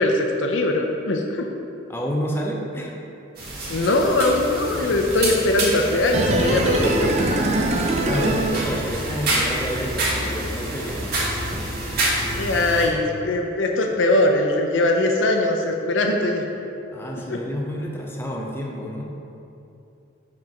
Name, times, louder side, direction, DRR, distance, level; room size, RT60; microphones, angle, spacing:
voice 1, 0.0-1.5 3.7-7.8 8.1-8.5 12.3-16.4 17.3-17.4, left 2 dB, 80° left, 2 dB, 0.6 m, -21 dB
voice 2, 1.9-3.0 8.0-11.2 11.5-11.6 12.0-12.2 16.9-19.1, equal, 10° left, -1 dB, 0.6 m, -30 dB
sound 1, 3.4-12.9, right 1 dB, 55° right, 1.5 m, -27 dB
sound 2, 6.1-9.3 9.5-9.6, right 2 dB, 35° right, 0.5 m, -22 dB
6.0 x 4.5 x 5.1 m, 2.7 s
head